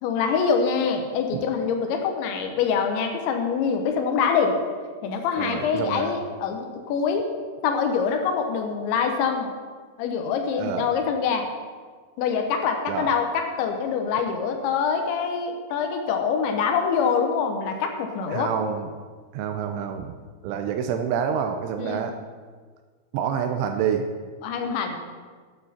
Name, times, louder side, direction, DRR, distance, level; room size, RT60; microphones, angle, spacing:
voice 1, 0.0-4.6 5.0-7.3 7.6-9.5 10.0-11.5 12.2-18.5 21.8-22.1 24.4-25.0, left 6 dB, 75° left, 4 dB, 3.0 m, -25 dB
voice 2, 5.4-6.2 10.6-10.9 12.9-13.1 18.3-18.9 19.3-20.2 20.4-22.1 23.1-24.0, right 8 dB, 85° right, 6 dB, 2.8 m, -27 dB
13.0 x 9.5 x 4.3 m, 1.5 s
omnidirectional pair, 5.9 m